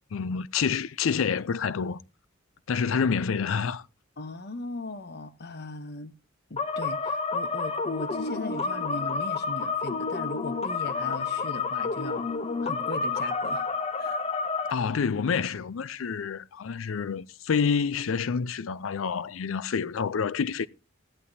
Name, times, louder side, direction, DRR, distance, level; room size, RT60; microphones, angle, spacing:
voice 1, 0.1-2.0 2.7-3.8 14.7-20.7, left 6 dB, 85° left, 0.5 m, -28 dB
voice 2, 4.2-6.1 6.5-12.3 12.6-13.7 14.0-14.2, left 2 dB, 55° left, 1.0 m, -38 dB
sound 1, 6.6-14.7, left 4 dB, 30° left, 0.7 m, -30 dB
14.5 x 11.5 x 2.7 m
head